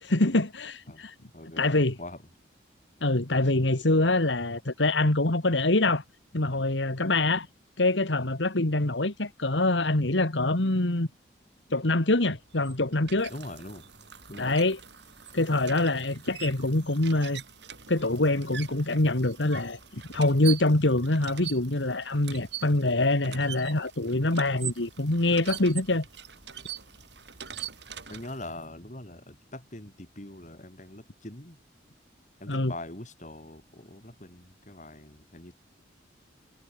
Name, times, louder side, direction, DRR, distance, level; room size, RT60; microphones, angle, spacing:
voice 1, 0.0-1.1 1.6-2.0 3.0-6.0 6.3-7.5 7.8-11.1 11.7-13.3 14.4-14.8 15.3-17.4 17.9-26.1 32.5-32.7, left 2 dB, 75° left, 2.1 m, -25 dB
voice 2, 1.3-2.2 13.3-13.9 14.3-14.6 28.1-31.6 32.4-35.5, left 1 dB, 40° left, 3.8 m, -43 dB
sound 1, 12.4-28.6, right 10 dB, 65° right, 7.9 m, -43 dB
head